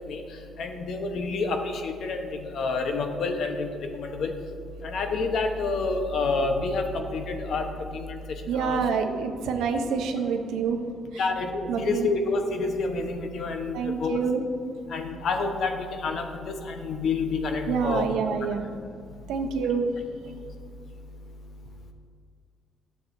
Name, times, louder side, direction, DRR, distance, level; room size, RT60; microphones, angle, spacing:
voice 1, 0.6-3.7 3.9-4.3 4.8-7.7 7.9-8.2 8.5-8.8 11.2-14.2 14.9-18.0, left 3 dB, 65° left, 5 dB, 0.9 m, -28 dB
voice 2, 8.5-10.8 11.1-11.2 11.7-12.1 13.7-14.4 17.7-18.7 19.3-19.8, right 6 dB, 90° right, 6 dB, 0.7 m, -27 dB
12.0 x 7.0 x 2.6 m, 2.3 s
cardioid pair, 90°, 0 cm